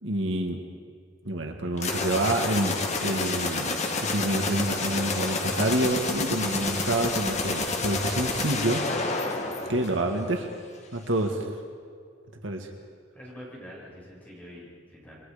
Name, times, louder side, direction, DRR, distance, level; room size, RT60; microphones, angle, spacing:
voice 1, 0.0-0.6 1.3-8.8 9.7-10.5 10.9-11.4 12.4-12.7, right 1 dB, 70° right, 3 dB, 2.0 m, -28 dB
sound 1, 1.8-10.4, left 3 dB, 35° left, 2.0 m, -29 dB
voice 2, 9.4-9.8 13.1-15.2, equal, 10° left, -6 dB, 7.1 m, -45 dB
28.5 x 22.5 x 5.2 m, 2.2 s
head